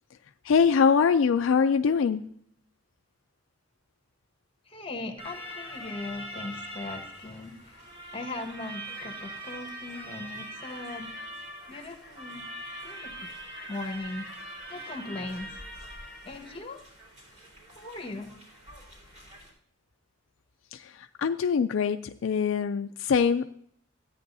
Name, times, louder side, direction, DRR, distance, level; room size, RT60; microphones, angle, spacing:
voice 1, 0.4-2.2 20.7-23.4, left 6 dB, 70° left, 8 dB, 0.4 m, -23 dB
voice 2, 4.7-7.9 8.1-11.1 11.4-12.5 12.8-13.3 13.7-14.3 14.7-15.6 16.2-16.8 17.7-18.3, left 2 dB, 30° left, 4 dB, 1.4 m, -39 dB
sound 1, 5.2-19.5, right 1 dB, 35° right, 3.4 m, -42 dB
14.0 x 9.1 x 2.7 m, 0.64 s
head